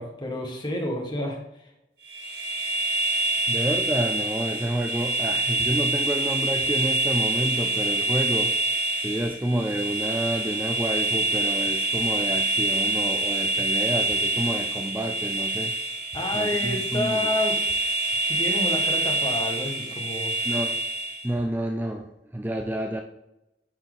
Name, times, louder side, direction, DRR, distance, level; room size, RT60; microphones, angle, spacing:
voice 1, 0.0-1.4 16.1-17.6 18.3-20.4, left 1 dB, 25° left, 1 dB, 1.7 m, -29 dB
sound 1, 2.0-21.3, right 2 dB, 70° right, 2.4 m, -26 dB
voice 2, 3.5-8.5 9.0-15.7 16.3-17.3 20.4-20.8 21.2-23.0, right 1 dB, 10° right, 3 dB, 0.5 m, -29 dB
11.0 x 4.4 x 4.0 m, 0.88 s
head